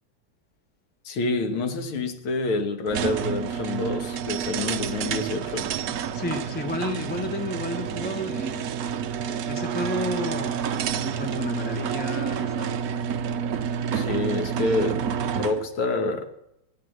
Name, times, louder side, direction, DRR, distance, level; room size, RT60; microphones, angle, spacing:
voice 1, 1.1-5.7 13.9-15.0 15.3-16.3, left 3 dB, 75° left, 2.1 m, -27 dB
sound 1, 2.9-15.7, right 8 dB, 75° right, 0.8 m, -29 dB
voice 2, 6.1-8.7 9.3-10.6 11.0-12.8, left 1 dB, 15° left, 0.4 m, -31 dB
16.0 x 9.3 x 7.8 m
omnidirectional pair, 2.3 m